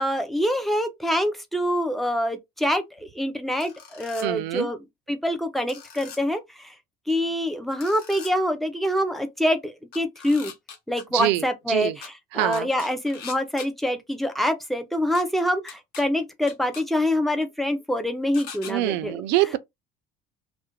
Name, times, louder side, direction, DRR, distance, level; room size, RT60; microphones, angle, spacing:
voice 1, 0.0-4.8 5.1-6.7 7.1-10.5 10.9-19.2, equal, ahead, 0.4 m, -25 dB
sound 1, 3.6-4.3 5.7-6.2 7.8-8.3 9.9-11.0 12.0-12.1 12.5-13.7 15.2-15.3 15.7-16.0 16.5-16.8 18.3-18.7, left 6 dB, 60° left, 0.8 m, -41 dB
voice 2, 4.2-4.7 11.1-12.0 12.3-12.7 18.7-19.6, right 16 dB, 75° right, 0.4 m, -25 dB
2.3 x 2.1 x 2.9 m
cardioid pair, 140°, 18 cm